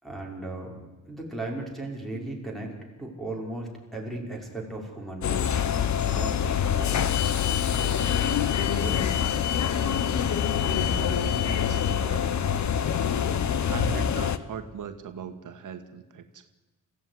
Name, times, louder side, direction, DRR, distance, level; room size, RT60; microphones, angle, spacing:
voice 1, 0.0-0.8 1.1-2.7 3.0-5.6 6.0-7.2 7.7-8.2 8.7-9.2, right 2 dB, ahead, 0 dB, 5.6 m, -36 dB
sound 1, 5.2-14.4, left 8 dB, 60° left, 1.2 m, -25 dB
voice 2, 10.7-12.4 13.7-16.5, right 6 dB, 75° right, 7 dB, 1.6 m, -39 dB
29.0 x 15.5 x 9.8 m, 1.1 s
wide cardioid pair, 155°, 32 cm